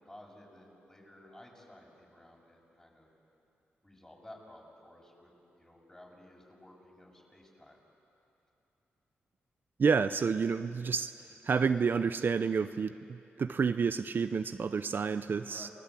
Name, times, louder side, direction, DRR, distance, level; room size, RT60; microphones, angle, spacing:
voice 1, 0.0-3.1 3.8-7.8 15.5-15.7, left 1 dB, 15° left, -2 dB, 7.2 m, -54 dB
voice 2, 9.8-11.1 11.4-15.7, right 5 dB, 55° right, 11 dB, 0.6 m, -29 dB
28.5 x 21.0 x 8.4 m, 2.8 s
cardioid pair, 70°, 4 cm